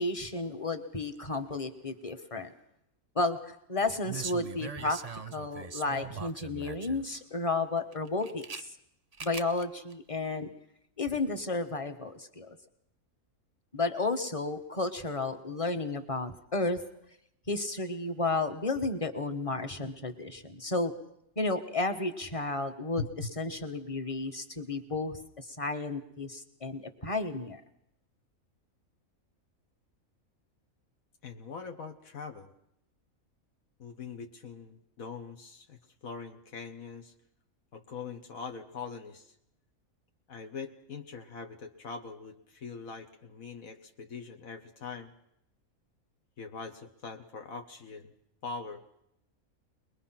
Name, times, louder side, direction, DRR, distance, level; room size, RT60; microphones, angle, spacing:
voice 1, 0.0-2.5 3.1-5.0 5.3-8.7 9.2-10.5 11.0-12.6 13.7-16.8 17.5-20.9 21.4-27.6, left 3 dB, 25° left, 7 dB, 1.4 m, -32 dB
sound 1, 4.0-7.2 7.9-8.6 9.1-9.6 9.9-10.0, right 5 dB, 35° right, 0.8 m, -41 dB
voice 2, 23.0-23.3 31.2-32.5 33.8-37.1 37.7-39.4 40.3-45.1 46.4-48.1 48.4-48.8, left 5 dB, 75° left, 5 dB, 1.7 m, -42 dB
22.0 x 22.0 x 5.9 m, 0.76 s
omnidirectional pair, 1.5 m